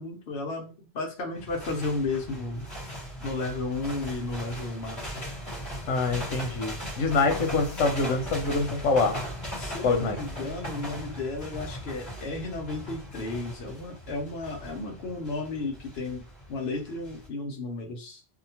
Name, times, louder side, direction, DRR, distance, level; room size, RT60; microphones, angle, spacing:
voice 1, 0.0-2.7 3.2-5.2 9.6-18.2, left 3 dB, 65° left, 2 dB, 0.9 m, -33 dB
sound 1, 1.4-17.3, equal, 15° left, 1.0 m, -38 dB
voice 2, 5.9-9.2 9.8-10.2, left 3 dB, 90° left, 4 dB, 1.0 m, -25 dB
2.8 x 2.1 x 2.8 m, 0.35 s
omnidirectional pair, 1.2 m